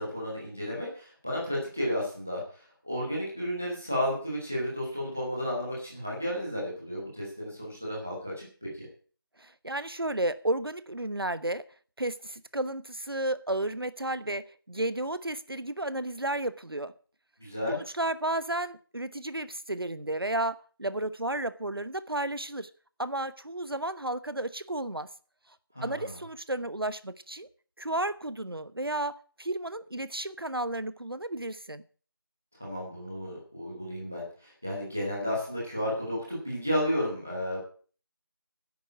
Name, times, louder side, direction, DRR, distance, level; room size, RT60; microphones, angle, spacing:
voice 1, 0.0-2.4 2.8-8.9 17.4-17.8 25.7-26.1 32.6-37.6, equal, 5° right, -5 dB, 1.0 m, -32 dB
voice 2, 9.4-11.6 12.0-16.9 17.7-22.7 23.0-25.1 25.8-27.5 27.8-31.8, right 1 dB, 80° right, 15 dB, 1.0 m, -32 dB
10.5 x 8.4 x 7.5 m, 0.41 s
figure-of-eight pair, 175°, 12 cm